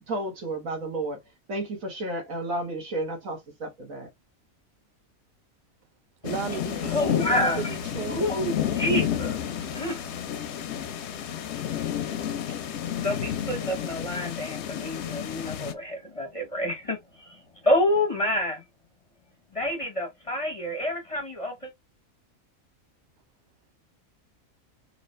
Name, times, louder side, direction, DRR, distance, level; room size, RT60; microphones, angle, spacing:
voice 1, 0.1-1.2 1.5-4.1, right 1 dB, 70° right, 1.9 m, -32 dB
sound 1, 6.2-15.7, left 10 dB, 60° left, 0.8 m, -31 dB
voice 2, 6.2-8.3, right 9 dB, 90° right, 0.4 m, -35 dB
sound 2, 6.7-17.0 17.4-17.7, right 3 dB, 35° right, 1.0 m, -50 dB
voice 3, 6.9-7.8 8.1-10.1 13.0-18.6 19.5-21.7, left 1 dB, 30° left, 0.7 m, -28 dB
3.9 x 2.8 x 3.2 m
omnidirectional pair, 1.5 m